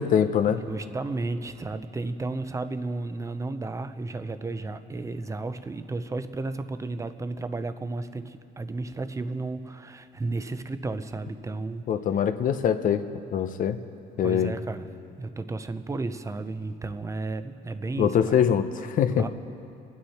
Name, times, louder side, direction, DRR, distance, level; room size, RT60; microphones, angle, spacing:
voice 1, 0.0-0.6 11.9-13.0 13.3-13.8 14.2-14.5 18.0-19.3, left 8 dB, 55° left, 10 dB, 0.8 m, -23 dB
voice 2, 0.6-11.9 14.2-14.9 15.2-18.3 19.1-19.3, right 3 dB, 20° right, 10 dB, 0.7 m, -33 dB
27.5 x 9.6 x 4.3 m, 2.7 s
cardioid pair, 110°, 17 cm